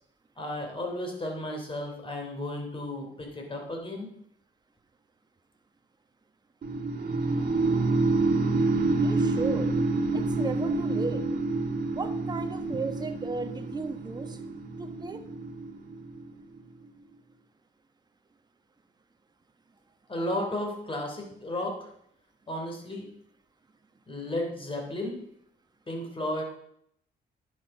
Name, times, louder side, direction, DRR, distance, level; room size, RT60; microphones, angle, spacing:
voice 1, 0.4-4.1 20.1-21.8 22.5-23.1 24.1-25.2 25.9-26.4, left 1 dB, 25° left, 1 dB, 3.3 m, -33 dB
sound 1, 6.6-16.6, right 3 dB, 50° right, 1.9 m, -28 dB
voice 2, 8.9-9.7 10.1-11.2 11.8-14.4 14.8-15.2, right 3 dB, 20° right, 6 dB, 1.1 m, -35 dB
10.5 x 6.5 x 5.5 m, 0.72 s
cardioid pair, 90°, 20 cm